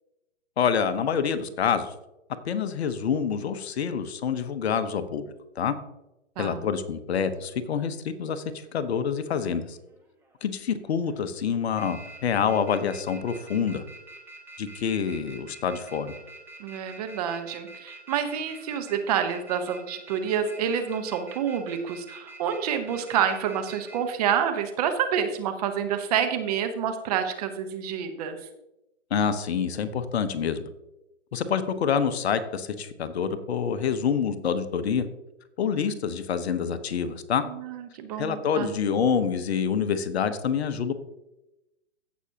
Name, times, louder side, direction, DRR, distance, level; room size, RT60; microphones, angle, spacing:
voice 1, 0.6-1.9 2.4-5.3 5.6-5.7 6.4-8.4 8.7-9.8 10.4-13.8 14.6-16.1 29.1-30.6 31.3-35.1 35.6-37.4 38.2-40.9, left 7 dB, 55° left, 11 dB, 1.0 m, -27 dB
sound 1, 8.7-9.1 9.7-10.4 10.8-11.2 11.5-24.0, right 1 dB, 5° right, 1.2 m, -46 dB
voice 2, 16.6-28.4 37.4-38.7, right 8 dB, 30° right, 8 dB, 0.9 m, -28 dB
15.5 x 6.1 x 2.9 m, 0.92 s
hypercardioid pair, 145°, 37 cm